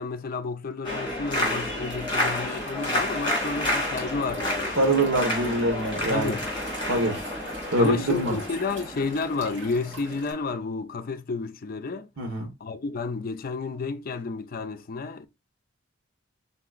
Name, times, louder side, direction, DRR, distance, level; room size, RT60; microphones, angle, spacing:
voice 1, 0.0-4.9 6.1-6.5 7.8-12.1 12.3-15.3, left 4 dB, 45° left, 0.5 m, -31 dB
sound 1, 0.8-10.5, left 1 dB, 25° left, 2.3 m, -30 dB
Walk footsteps / Chirp tweet / Stream, 1.8-10.3, right 2 dB, 65° right, 2.0 m, -46 dB
voice 2, 4.8-6.3 6.9-7.2 7.7-8.4 12.2-12.5, right 1 dB, 85° right, 1.1 m, -24 dB
4.7 x 3.8 x 2.4 m
head